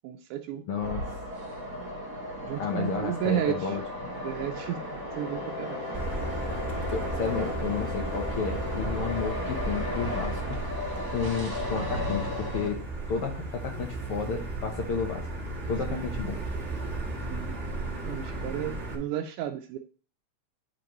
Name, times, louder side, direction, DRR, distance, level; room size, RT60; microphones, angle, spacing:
voice 1, 0.0-0.6 2.4-3.8 4.2-6.2 15.9-16.1 17.3-17.5 18.1-19.8, right 11 dB, 85° right, 4 dB, 2.0 m, -33 dB
voice 2, 0.7-1.0 2.6-4.1 6.9-10.6 11.1-12.8 13.1-15.2 15.7-16.4, left 5 dB, 70° left, 3 dB, 1.4 m, -32 dB
sound 1, 0.8-12.7, left 1 dB, 50° right, 2.4 m, -35 dB
sound 2, 4.9-11.5, left 10 dB, 85° left, 2.4 m, -42 dB
Motor vehicle (road), 5.9-18.9, right 2 dB, 30° right, 1.4 m, -35 dB
8.9 x 5.0 x 3.1 m, 0.40 s
omnidirectional pair, 3.5 m